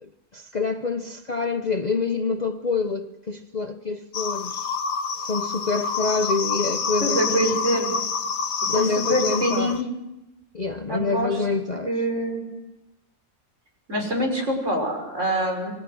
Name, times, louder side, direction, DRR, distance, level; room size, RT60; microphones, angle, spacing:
voice 1, 0.0-4.8 5.2-7.8 8.7-9.8 10.5-11.9, left 4 dB, 35° left, 0.9 m, -27 dB
sound 1, 4.1-9.8, left 5 dB, 75° left, 1.5 m, -27 dB
voice 2, 7.0-8.0 8.8-9.9 10.9-11.4 11.9-12.5 13.9-15.7, right 1 dB, 55° right, 6.1 m, -25 dB
28.5 x 22.0 x 6.3 m
omnidirectional pair, 1.5 m